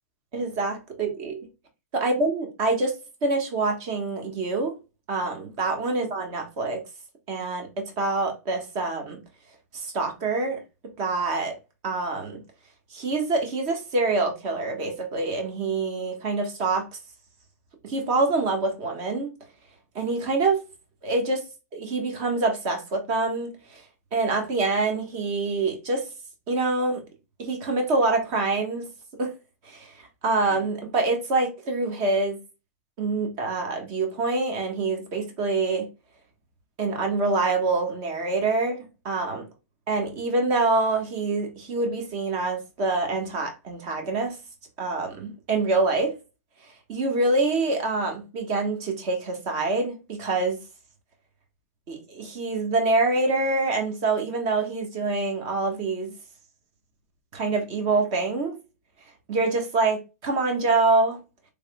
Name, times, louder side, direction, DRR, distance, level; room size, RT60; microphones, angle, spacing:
voice 1, 0.3-1.5 1.9-4.8 5.1-6.8 7.3-9.2 9.7-11.6 11.8-12.4 12.9-16.9 17.8-19.3 19.9-20.6 21.0-21.5 21.7-23.8 24.1-26.1 26.5-27.0 27.4-28.9 29.2-29.3 29.6-32.4 33.0-35.9 36.8-39.5 39.9-44.4 44.8-46.1 46.9-50.6 51.9-56.1 57.3-58.6 59.3-61.2, right 3 dB, 40° right, 1.3 m, -26 dB
3.4 x 3.4 x 2.2 m
hypercardioid pair, 135°, 9 cm